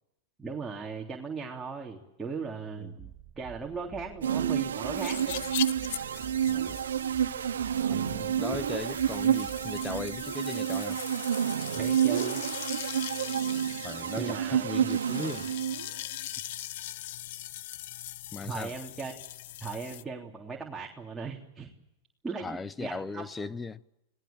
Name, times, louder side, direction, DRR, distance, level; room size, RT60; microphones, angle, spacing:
voice 1, 0.4-3.0 3.4-5.5 5.8-6.2 11.7-12.4 14.2-14.6 18.4-19.1 19.6-21.7 22.2-23.2, right 4 dB, 10° right, 3.4 m, -38 dB
voice 2, 2.8-3.1 6.5-6.8 7.9-11.0 13.8-15.5 18.3-18.7 22.4-23.8, left 4 dB, 15° left, 0.8 m, -38 dB
sound 1, 3.0-10.3, right 13 dB, 40° right, 3.1 m, -50 dB
sound 2, 4.2-16.0, right 9 dB, 85° right, 0.9 m, -29 dB
sound 3, 4.9-20.0, left 14 dB, 65° left, 0.9 m, -41 dB
29.5 x 19.0 x 7.3 m
hypercardioid pair, 105°, 0 cm